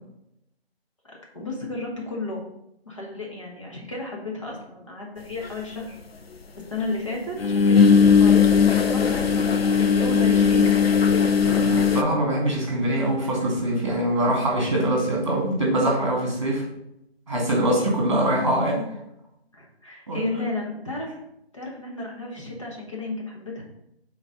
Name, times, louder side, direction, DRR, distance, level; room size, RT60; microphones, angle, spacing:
voice 1, 1.3-2.4 2.8-6.0 6.7-10.8 18.4-18.5 19.5-21.2 21.5-23.6, left 2 dB, 30° left, -2 dB, 1.2 m, -33 dB
sound 1, 5.5-5.6 7.4-12.0, left 6 dB, 70° left, 0.7 m, -18 dB
voice 2, 11.4-16.6 17.3-18.8 20.1-20.3, right 1 dB, 30° right, -2 dB, 1.9 m, -23 dB
8.3 x 4.1 x 3.8 m, 0.81 s
figure-of-eight pair, 180°, 32 cm